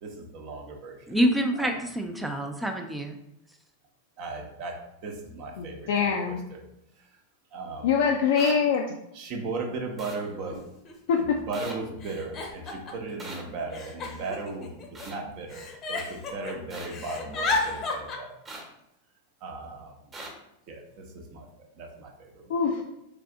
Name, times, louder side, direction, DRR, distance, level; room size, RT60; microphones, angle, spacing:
voice 1, 0.0-1.0 1.6-1.8 4.2-4.7 5.0-6.1 6.5-6.6 7.5-8.0 9.1-10.6 11.2-14.7 15.0-18.3 19.4-19.9 20.7-20.8 21.3-21.5 21.8-22.5, right 3 dB, 45° right, 2 dB, 0.9 m, -36 dB
voice 2, 1.1-3.2, equal, 5° right, 4 dB, 0.4 m, -26 dB
voice 3, 5.6-6.4 7.8-8.8 11.1-11.2 22.5-22.8, left 6 dB, 55° left, 0 dB, 0.4 m, -24 dB
sound 1, 8.4-8.5 10.0-10.2 11.5-11.7 13.2-13.4 14.9-15.2 16.7-16.9 18.5-18.6 20.1-20.3, right 2 dB, 20° right, 1.1 m, -40 dB
Giggle, 9.4-9.5 10.5-10.6 10.8-11.4 12.0-13.1 13.7-15.0 15.5-16.5 16.8-18.2, left 3 dB, 30° left, 0.8 m, -32 dB
3.4 x 3.3 x 3.7 m, 0.81 s
figure-of-eight pair, 90°, 0 cm